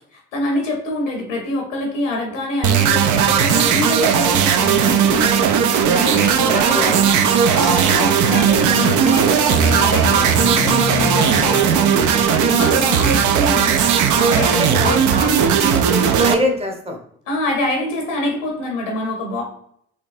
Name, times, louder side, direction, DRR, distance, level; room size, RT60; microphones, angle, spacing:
voice 1, 0.1-7.1 7.5-15.0 17.3-19.4, left 2 dB, 90° left, 1 dB, 0.8 m, -25 dB
sound 1, 2.6-16.3, right 7 dB, 55° right, 0.5 m, -16 dB
voice 2, 5.8-7.0 7.9-8.0 14.4-17.0, equal, 15° right, 3 dB, 0.9 m, -25 dB
sound 2, 7.9-15.6, left 4 dB, 20° left, 0.6 m, -31 dB
3.4 x 2.9 x 2.6 m, 0.66 s
hypercardioid pair, 40°, 36 cm